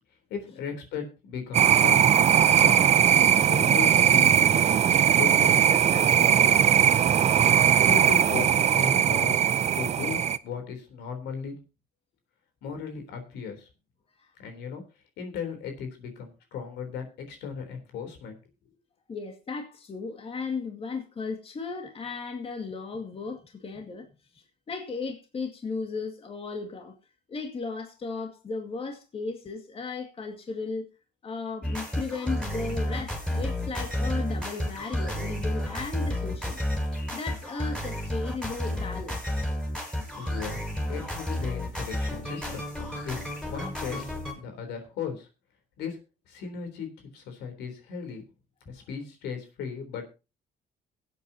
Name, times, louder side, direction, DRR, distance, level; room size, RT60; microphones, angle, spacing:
voice 1, 0.3-2.2 2.5-2.9 3.3-6.6 7.8-9.4 9.7-11.6 12.6-13.7 14.4-14.8 15.2-18.4 40.0-40.6 40.9-42.6 43.0-43.2 43.5-45.3 45.8-46.0 46.3-48.2 48.7-50.1, left 6 dB, 85° left, 3.7 m, -36 dB
sound 1, 1.5-10.4, right 9 dB, 40° right, 0.6 m, -20 dB
voice 2, 19.1-24.1 24.3-26.9 27.3-30.8 31.2-36.6 37.1-39.2, left 4 dB, 35° left, 2.2 m, -35 dB
sound 2, 31.6-44.3, left 1 dB, 5° left, 5.1 m, -31 dB
23.0 x 8.3 x 2.9 m
cardioid pair, 110°, 17 cm